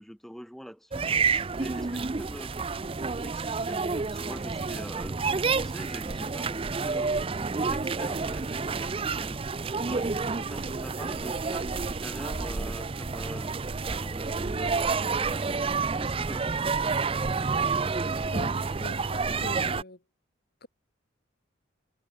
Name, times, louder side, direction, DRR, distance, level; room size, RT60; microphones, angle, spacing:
voice 1, 0.0-2.7 3.2-7.1 7.6-9.4 9.9-13.5 13.8-16.9, equal, ahead, 7.4 m, -44 dB
sound 1, 0.9-19.8, right 4 dB, 30° right, 0.5 m, -29 dB
voice 2, 18.3-20.0 20.6-20.7, left 1 dB, 50° left, 2.2 m, -42 dB
head